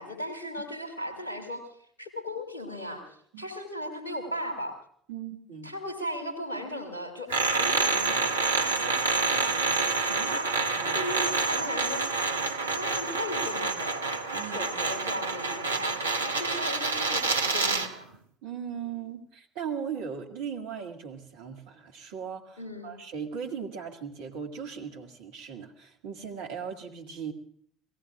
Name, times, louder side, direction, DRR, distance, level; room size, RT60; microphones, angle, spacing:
voice 1, 0.0-1.7 2.0-4.7 5.6-12.1 12.7-14.2 14.4-18.1 22.6-22.9, equal, 85° left, 6 dB, 2.6 m, -37 dB
voice 2, 5.1-5.7 10.7-11.0 14.3-14.6 18.4-27.3, right 7 dB, 60° right, 2 dB, 1.9 m, -38 dB
sound 1, 7.3-17.9, right 4 dB, 80° right, 0.8 m, -28 dB
29.5 x 18.0 x 2.4 m, 0.62 s
figure-of-eight pair, 60°, 0 cm